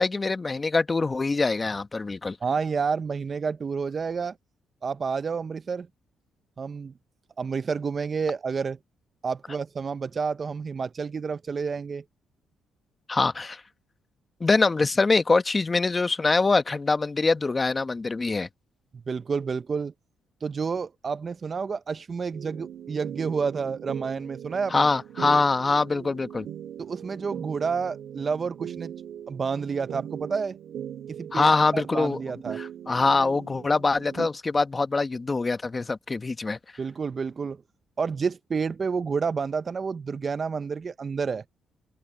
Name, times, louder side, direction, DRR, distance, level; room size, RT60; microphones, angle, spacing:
voice 1, 0.0-2.4 13.1-13.6 14.4-18.5 24.7-26.5 31.3-32.2 32.6-36.6, left 3 dB, 25° left, 1.3 m, -24 dB
voice 2, 2.4-4.3 4.8-5.9 6.6-6.9 7.4-8.8 9.2-12.0 19.1-19.9 20.4-24.9 26.8-28.9 29.3-30.6 31.1-32.6 36.8-37.6 38.0-41.4, right 5 dB, 40° right, 0.5 m, -29 dB
sound 1, 22.3-34.3, right 9 dB, 65° right, 2.5 m, -40 dB
open air
cardioid pair, 90°, 0 cm